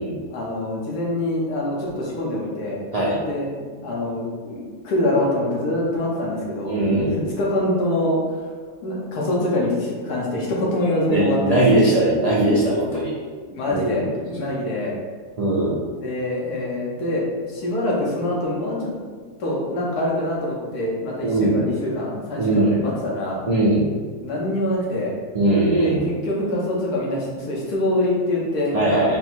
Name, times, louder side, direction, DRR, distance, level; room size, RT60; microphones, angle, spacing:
voice 1, 0.3-2.8 3.2-3.5 3.8-6.7 7.4-8.4 8.8-11.9 13.4-15.0 16.0-17.2 17.5-19.0 19.4-23.4 24.2-25.1 25.7-29.2, left 1 dB, 90° left, -3 dB, 1.5 m, -25 dB
voice 2, 6.7-7.2 11.1-13.1 13.7-14.0 15.4-15.7 21.2-21.6 22.4-22.7 23.5-23.8 25.3-26.0 28.7-29.2, right 2 dB, 65° right, -7 dB, 0.3 m, -19 dB
4.1 x 2.1 x 4.4 m, 1.5 s
omnidirectional pair, 1.6 m